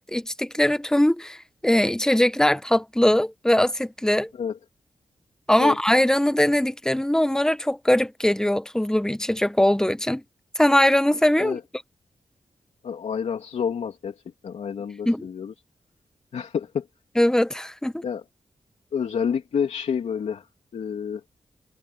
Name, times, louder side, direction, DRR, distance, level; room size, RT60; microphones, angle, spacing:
voice 1, 0.0-1.4 1.6-4.3 5.5-10.2 10.6-11.6 15.1-15.3 17.2-18.0, left 1 dB, 5° left, 1.2 m, -21 dB
voice 2, 12.8-14.1 14.4-15.5 16.3-16.9 18.0-18.2 18.9-20.4 20.7-21.2, left 7 dB, 90° left, 3.4 m, -28 dB
wide cardioid pair, 90°, 11 cm